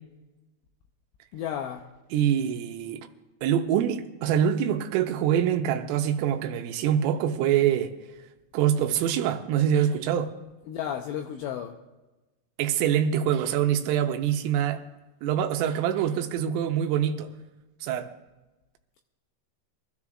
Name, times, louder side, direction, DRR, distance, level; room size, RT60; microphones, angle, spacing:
voice 1, 1.3-1.9 10.7-11.8, left 9 dB, 85° left, 2.6 m, -33 dB
voice 2, 2.1-3.1 3.4-8.0 8.5-10.3 12.6-14.8 15.2-17.3 17.8-18.1, right 9 dB, 85° right, 3.3 m, -25 dB
24.0 x 14.5 x 2.4 m
omnidirectional pair, 5.8 m